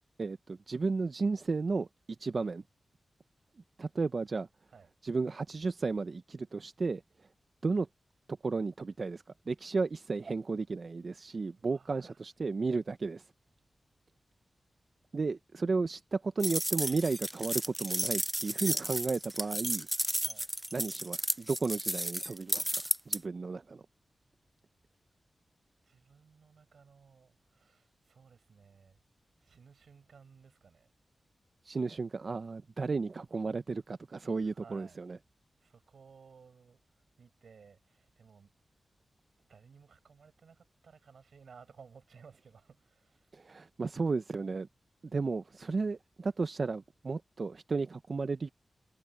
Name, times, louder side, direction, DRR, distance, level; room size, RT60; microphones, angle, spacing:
voice 1, 0.2-1.9 2.2-2.6 3.8-4.5 5.0-7.0 7.6-7.9 8.4-13.3 15.1-19.9 20.7-22.7 23.1-23.8 31.6-35.2 43.3-44.7 45.1-48.5, right 4 dB, 55° right, 0.6 m, -33 dB
voice 2, 11.2-12.4 20.2-20.5 25.8-29.0 29.4-30.9 34.4-35.0 35.6-36.8 37.2-38.5 39.5-43.4, right 6 dB, 85° right, 7.0 m, -58 dB
sound 1, 16.4-23.2, right 1 dB, 10° right, 0.4 m, -33 dB
cardioid pair, 70°, 0 cm